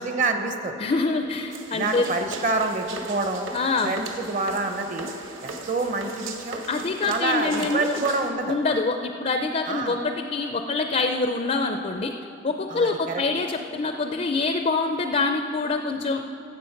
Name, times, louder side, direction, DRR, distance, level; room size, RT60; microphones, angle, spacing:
voice 1, 0.0-0.9 1.7-3.5 3.8-5.1 5.4-6.6 7.1-8.6 9.6-10.0 12.7-13.2, right 3 dB, 40° right, 6 dB, 0.8 m, -27 dB
voice 2, 0.8-2.1 3.5-4.0 6.7-8.1 8.4-12.1 12.4-16.2, left 3 dB, 35° left, 6 dB, 0.4 m, -25 dB
sound 1, 1.5-8.3, right 3 dB, 70° right, 1.3 m, -38 dB
14.5 x 7.8 x 5.8 m, 2.9 s
head